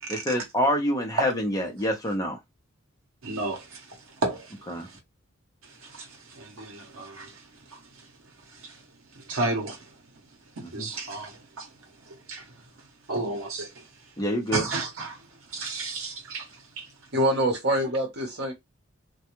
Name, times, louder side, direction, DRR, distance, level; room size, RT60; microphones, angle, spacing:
voice 1, 0.1-2.4 4.7-4.9 10.8-10.9 14.2-14.6, equal, 15° left, 0.7 m, -26 dB
voice 2, 3.2-5.0 5.6-8.1 8.5-8.9 9.1-10.0 10.6-12.6 13.1-13.9 14.5-16.9 17.8-17.9, right 2 dB, 85° right, 0.8 m, -34 dB
voice 3, 17.1-18.5, right 1 dB, 55° right, 0.9 m, -25 dB
2.3 x 2.2 x 2.9 m
head